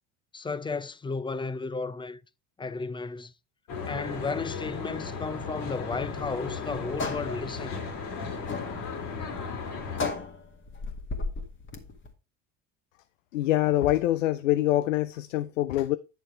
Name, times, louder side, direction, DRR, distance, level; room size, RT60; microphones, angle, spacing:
voice 1, 0.3-2.2 2.6-3.3 3.8-7.8, left 4 dB, 15° left, 0.5 m, -33 dB
Traffic noise roadway noise, 3.7-10.1, left 5 dB, 60° left, 2.6 m, -35 dB
sound 1, 6.0-12.1, left 3 dB, 30° left, 1.8 m, -36 dB
voice 2, 13.3-16.0, left 14 dB, 85° left, 0.5 m, -25 dB
9.4 x 6.5 x 3.2 m
hypercardioid pair, 75°, 37 cm